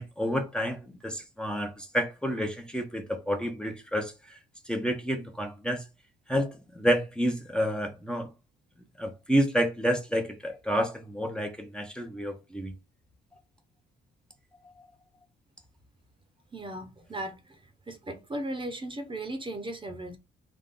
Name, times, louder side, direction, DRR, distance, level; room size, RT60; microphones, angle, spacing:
voice 1, 0.0-4.4 4.6-5.8 6.3-8.3 9.0-12.7 14.6-14.9, equal, 5° left, 1.0 m, -29 dB
voice 2, 16.5-17.4 17.9-20.2, right 1 dB, 25° right, 1.0 m, -36 dB
3.6 x 3.2 x 3.8 m
cardioid pair, 90°, 20 cm